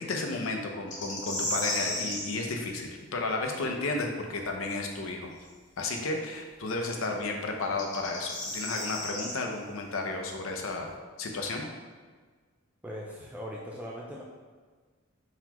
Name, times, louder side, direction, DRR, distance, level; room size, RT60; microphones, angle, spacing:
voice 1, 0.0-5.3 5.8-10.9 11.2-11.6, left 3 dB, 80° left, 2 dB, 0.6 m, -33 dB
sound 1, 0.9-2.3 5.4-5.5 7.6-9.3, left 1 dB, 40° left, 1.0 m, -33 dB
voice 2, 12.8-14.2, equal, 5° right, -3 dB, 0.3 m, -40 dB
4.4 x 4.0 x 2.9 m, 1.5 s
head